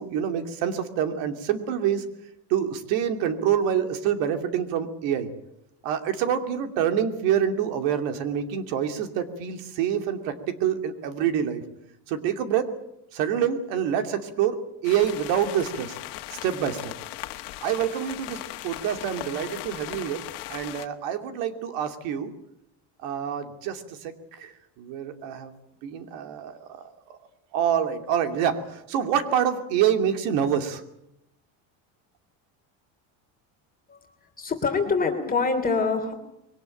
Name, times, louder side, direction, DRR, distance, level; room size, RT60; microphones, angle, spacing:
voice 1, 0.0-2.0 2.5-5.3 5.8-10.3 10.6-11.6 12.1-12.7 13.1-14.6 14.8-16.0 16.3-16.9 17.6-18.4 18.6-20.2 20.5-22.3 23.0-24.5 24.8-25.5 25.8-26.7 27.1-27.2 27.5-30.8, right 9 dB, 80° right, 7 dB, 2.7 m, -26 dB
sound 1, 14.8-20.9, left 16 dB, 70° left, 1.7 m, -38 dB
voice 2, 34.4-36.1, left 4 dB, 20° left, 4 dB, 3.1 m, -25 dB
22.5 x 18.5 x 9.0 m, 0.84 s
cardioid pair, 140°, 42 cm